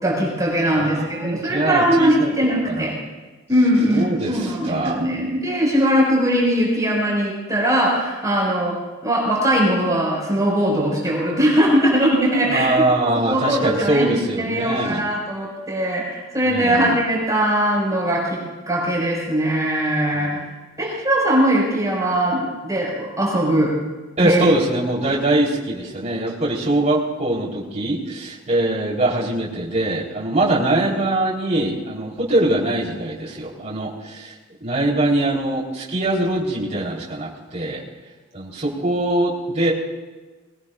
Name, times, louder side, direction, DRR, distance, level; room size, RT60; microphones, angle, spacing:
voice 1, 0.0-2.9 3.5-8.7 9.0-12.7 13.3-14.1 14.4-18.4 18.7-20.3 20.8-23.7 24.2-24.4, equal, 15° right, -4 dB, 5.7 m, -20 dB
voice 2, 0.7-2.9 3.9-5.0 12.4-15.0 16.5-17.0 20.1-20.4 24.2-34.3 34.6-37.8 38.3-39.7, right 2 dB, 35° right, -5 dB, 3.9 m, -22 dB
22.0 x 19.5 x 2.6 m, 1.3 s
head